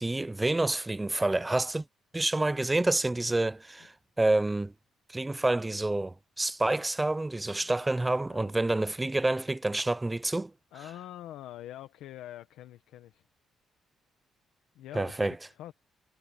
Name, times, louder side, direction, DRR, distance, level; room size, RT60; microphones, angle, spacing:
voice 1, 0.0-1.8 2.1-4.7 5.1-10.5 14.9-15.4, right 2 dB, 15° right, 0.6 m, -28 dB
voice 2, 7.4-7.8 8.1-8.5 10.7-13.2 14.7-15.7, left 13 dB, 90° left, 1.3 m, -45 dB
cardioid pair, 90°, 0 cm